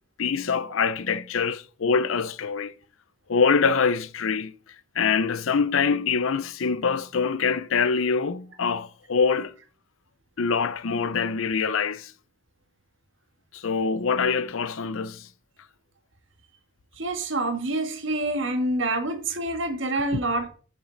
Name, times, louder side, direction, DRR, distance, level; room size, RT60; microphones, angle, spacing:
voice 1, 0.2-2.7 3.3-4.5 4.9-9.5 10.4-12.1 13.5-15.3 20.1-20.2, left 5 dB, 75° left, 0.5 m, -24 dB
voice 2, 16.9-20.5, right 2 dB, 65° right, 1.6 m, -27 dB
7.3 x 7.2 x 3.9 m
head